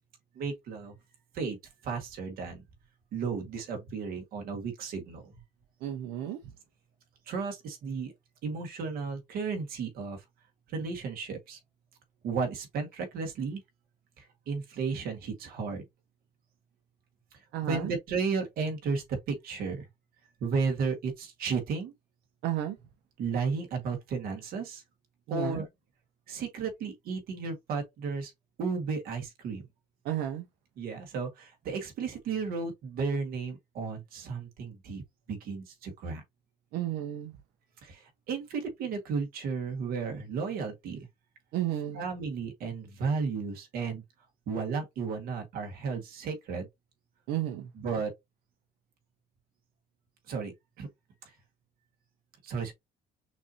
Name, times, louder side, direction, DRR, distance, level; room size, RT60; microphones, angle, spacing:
voice 1, 0.4-1.0 1.3-1.6 1.8-2.6 3.1-5.3 7.3-8.1 8.4-10.2 10.7-11.6 12.2-13.6 14.2-15.8 17.7-19.8 20.4-21.9 23.2-24.8 25.3-25.7 26.3-28.3 28.6-29.6 30.8-35.0 35.3-36.2 37.8-41.1 41.9-44.0 44.5-46.7 47.8-48.1 50.3-50.9 52.4-52.7, right 5 dB, 65° right, 1.8 m, -33 dB
voice 2, 5.8-6.4 17.5-17.9 22.4-22.8 25.3-25.6 30.0-30.4 36.7-37.3 41.5-42.0 47.3-47.7, right 11 dB, 80° right, 0.8 m, -32 dB
6.0 x 2.8 x 2.8 m
cardioid pair, 145°, 17 cm